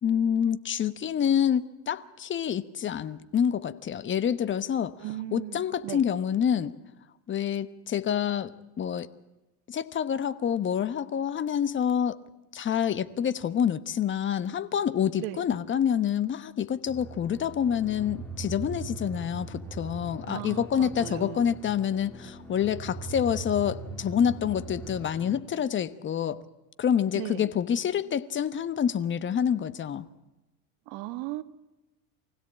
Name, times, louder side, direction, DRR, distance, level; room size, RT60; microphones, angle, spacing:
voice 1, 0.0-4.9 5.3-6.7 7.3-8.5 8.8-9.1 9.7-12.2 12.5-26.4 26.8-30.1, left 8 dB, 30° left, 1.2 m, -27 dB
voice 2, 5.0-6.0 15.2-15.4 20.3-21.5 27.1-27.5 30.9-31.4, right 15 dB, 60° right, 1.6 m, -37 dB
sound 1, 16.9-25.4, right 3 dB, 5° left, 2.9 m, -41 dB
24.5 x 16.5 x 8.8 m
supercardioid pair, 115°, 40 cm